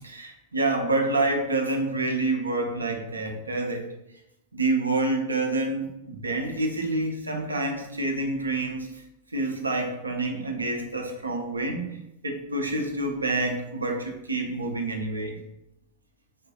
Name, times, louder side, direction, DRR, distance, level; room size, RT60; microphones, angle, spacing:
voice 1, 0.0-3.9 4.5-9.0 9.3-12.0 12.2-15.4, right 2 dB, 80° right, 3 dB, 0.4 m, -27 dB
3.6 x 2.3 x 2.6 m, 0.87 s
figure-of-eight pair, 90°, 0 cm